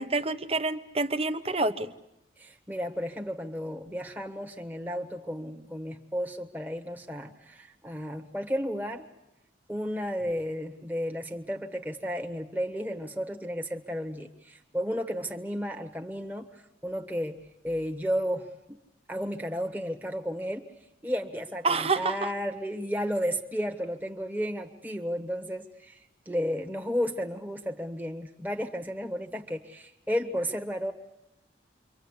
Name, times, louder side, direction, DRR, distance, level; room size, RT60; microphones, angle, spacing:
voice 1, 0.0-1.9 21.6-22.3, right 3 dB, 35° right, 11 dB, 1.0 m, -28 dB
voice 2, 2.4-9.0 9.7-16.5 16.8-18.5 19.1-20.7 21.0-26.0 26.3-30.9, equal, 10° right, 3 dB, 1.4 m, -33 dB
28.0 x 24.5 x 8.2 m, 0.89 s
head